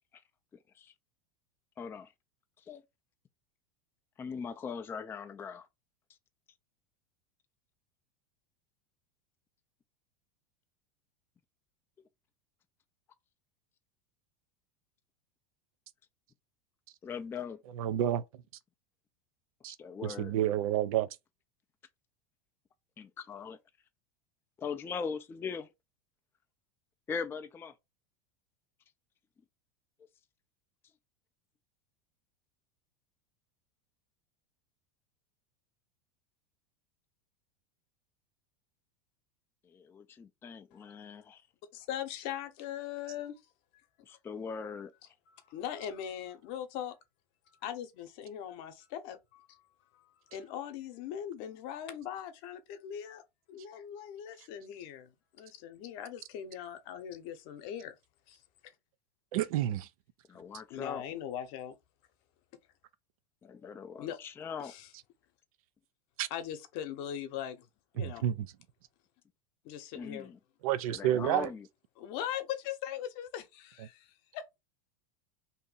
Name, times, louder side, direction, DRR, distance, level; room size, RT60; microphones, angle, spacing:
voice 1, 1.8-2.1 2.6-2.8 4.2-5.7 17.0-17.6 19.7-20.4 23.0-23.6 24.6-25.7 27.1-27.7 39.6-41.4 44.0-44.9 60.3-61.0 63.4-64.7 69.9-70.4 70.9-71.7, left 6 dB, 15° left, 0.3 m, -40 dB
voice 2, 17.8-18.2 19.6-19.8 20.0-21.1 59.3-59.9 66.2-66.3 68.0-68.5 70.6-71.5, right 12 dB, 75° right, 0.5 m, -29 dB
voice 3, 41.7-43.3 45.3-46.9 47.5-49.6 49.9-53.2 53.5-55.1 55.4-57.9 58.3-58.4 58.6-58.7 60.7-61.8 64.0-64.2 64.6-64.9 66.3-67.7 67.9-68.3 69.6-70.3 72.0-74.4, left 10 dB, 55° left, 0.8 m, -40 dB
2.8 x 2.6 x 3.8 m
supercardioid pair, 120°, 18 cm